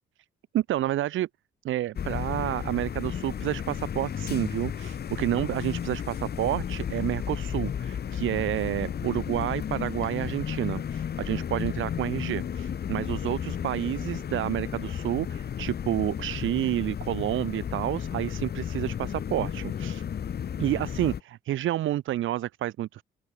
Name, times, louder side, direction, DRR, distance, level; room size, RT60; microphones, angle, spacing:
voice 1, 0.5-1.3 1.6-20.0 20.6-23.0, right 13 dB, 80° right, 2.7 m, -29 dB
sound 1, 2.0-21.2, left 8 dB, 55° left, 2.5 m, -33 dB
open air
cardioid pair, 90°, 20 cm